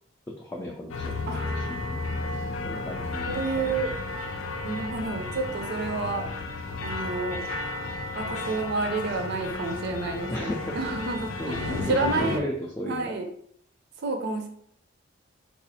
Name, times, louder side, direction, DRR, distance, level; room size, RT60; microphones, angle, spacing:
voice 1, 0.3-3.4 3.6-3.8 10.3-10.8 11.4-13.1, left 1 dB, 10° left, -1 dB, 0.3 m, -35 dB
sound 1, 0.9-12.4, left 2 dB, 80° left, 0.5 m, -33 dB
voice 2, 1.3-1.6 3.3-3.9 4.6-6.3 6.8-7.4 8.1-10.5 10.8-12.5 12.9-13.3 14.0-14.5, right 3 dB, 60° right, 4 dB, 0.5 m, -29 dB
4.1 x 2.4 x 2.7 m, 0.64 s
head